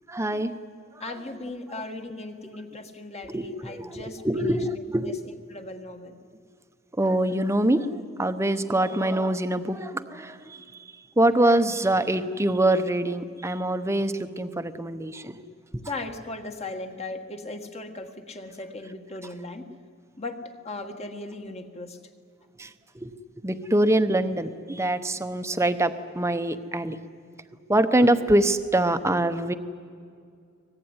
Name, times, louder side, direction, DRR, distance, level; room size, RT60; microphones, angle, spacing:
voice 1, 0.1-0.5 1.0-1.2 1.7-1.8 3.2-5.1 6.9-15.4 15.7-15.8 22.6-23.1 23.4-27.0 27.7-29.5, right 1 dB, 15° right, 10 dB, 0.9 m, -24 dB
voice 2, 1.0-4.6 5.0-5.1 5.5-6.2 15.9-19.7 20.2-22.0, left 2 dB, 30° left, 5 dB, 1.7 m, -37 dB
24.0 x 20.0 x 9.7 m, 2.3 s
head